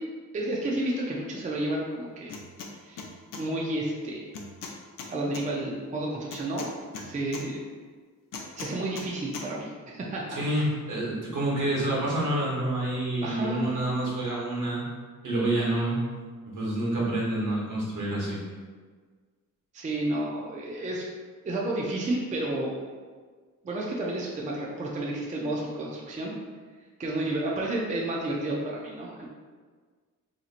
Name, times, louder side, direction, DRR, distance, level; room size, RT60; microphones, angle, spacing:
voice 1, 0.3-2.3 2.8-3.0 3.4-4.4 5.1-6.7 7.0-7.6 8.6-10.6 13.2-13.7 19.7-21.1 21.4-22.8 23.6-26.3 27.0-29.3, right 1 dB, 25° right, -3 dB, 0.4 m, -31 dB
sound 1, 2.3-2.7 3.0-3.4 4.3-5.4 6.3-7.4 8.3-9.1 9.3-9.5, left 4 dB, 80° left, 0.5 m, -39 dB
voice 2, 10.3-14.8 15.2-16.0 16.5-18.4, right 1 dB, 70° right, -4 dB, 1.1 m, -28 dB
4.0 x 2.8 x 2.4 m, 1.5 s
wide cardioid pair, 160°, 32 cm